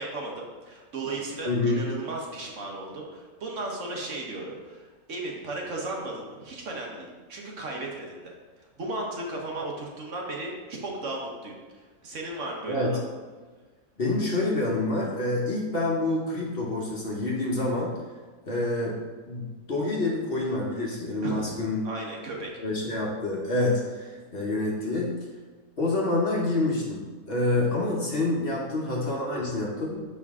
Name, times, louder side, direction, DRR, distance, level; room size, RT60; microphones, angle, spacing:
voice 1, 0.0-8.3 8.8-11.5 12.0-13.0 21.2-21.5 21.8-22.5, right 2 dB, 60° right, -1 dB, 1.3 m, -35 dB
voice 2, 1.4-1.8 12.7-13.0 14.0-17.9 18.5-19.0 19.3-21.8 22.6-25.2 25.8-30.0, left 2 dB, 45° left, -3 dB, 1.1 m, -27 dB
6.8 x 4.8 x 3.6 m, 1.4 s
omnidirectional pair, 1.5 m